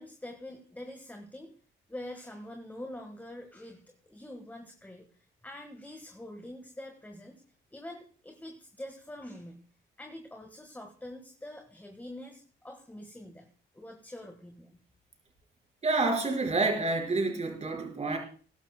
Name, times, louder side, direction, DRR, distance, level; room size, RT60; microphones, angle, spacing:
voice 1, 0.0-1.5 1.9-5.1 5.4-7.4 7.7-9.6 10.0-13.5 13.7-14.8, left 1 dB, 10° left, 4 dB, 1.5 m, -45 dB
voice 2, 15.8-18.2, right 3 dB, 35° right, 1 dB, 4.4 m, -28 dB
21.0 x 11.5 x 2.2 m, 0.42 s
cardioid pair, 90°, 20 cm